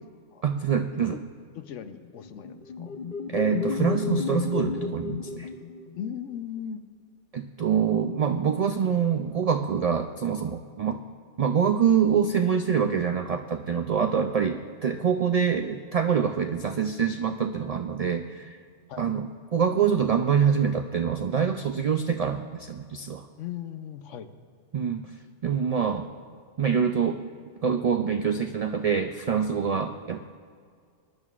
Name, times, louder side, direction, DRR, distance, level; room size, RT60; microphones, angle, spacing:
voice 1, 0.4-1.2 3.3-5.5 7.3-11.0 11.4-18.6 19.0-19.3 19.5-23.3 24.7-25.1 25.4-26.1 26.6-27.2 27.6-30.2, right 7 dB, 75° right, 6 dB, 0.3 m, -25 dB
voice 2, 1.5-3.0 6.0-6.8 18.9-19.1 23.4-24.3, left 9 dB, 85° left, 10 dB, 1.0 m, -38 dB
sound 1, 2.2-6.2, left 6 dB, 45° left, 0.8 m, -31 dB
19.5 x 11.0 x 2.4 m, 2.1 s
omnidirectional pair, 1.2 m